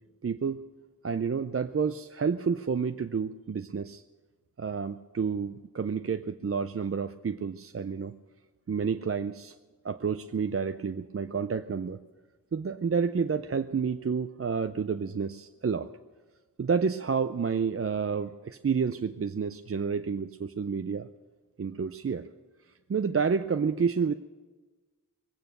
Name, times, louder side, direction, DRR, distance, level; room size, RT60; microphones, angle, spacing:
voice 1, 0.2-0.6 1.0-4.0 4.6-8.1 8.7-9.6 9.8-12.0 12.5-15.9 16.6-21.1 21.6-22.3 22.9-24.2, right 6 dB, 45° right, 9 dB, 0.5 m, -29 dB
22.0 x 9.1 x 6.7 m, 1.3 s
wide cardioid pair, 55°, 34 cm